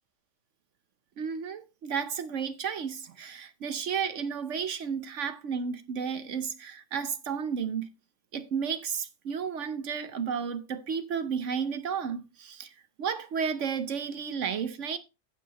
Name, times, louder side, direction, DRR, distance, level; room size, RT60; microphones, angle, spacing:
voice 1, 1.2-7.9 8.3-12.7 13.0-15.0, right 6 dB, 55° right, 0.9 m, -32 dB
15.0 x 5.5 x 2.9 m
omnidirectional pair, 1.8 m